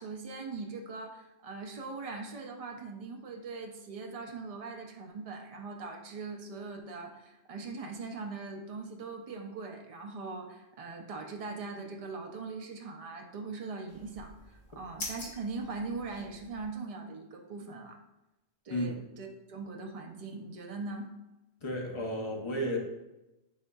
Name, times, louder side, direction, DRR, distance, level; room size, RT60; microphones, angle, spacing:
voice 1, 0.0-18.0 18.7-21.1, right 3 dB, 45° right, 2 dB, 0.5 m, -41 dB
sound 1, 13.9-16.7, left 2 dB, 80° left, 1.3 m, -45 dB
voice 2, 21.6-22.8, equal, 35° left, 0 dB, 0.6 m, -32 dB
5.5 x 3.5 x 2.3 m, 0.98 s
omnidirectional pair, 1.1 m